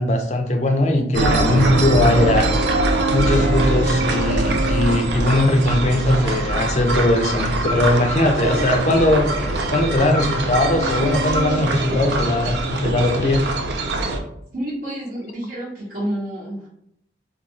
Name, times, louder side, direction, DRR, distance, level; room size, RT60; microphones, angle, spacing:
voice 1, 0.0-2.5 3.1-13.4, left 1 dB, 40° left, 4 dB, 0.4 m, -19 dB
sound 1, 1.1-14.2, right 2 dB, 75° right, 0.4 m, -22 dB
voice 2, 14.5-16.7, right 1 dB, 55° right, -11 dB, 0.9 m, -29 dB
2.5 x 2.3 x 2.9 m, 0.73 s
head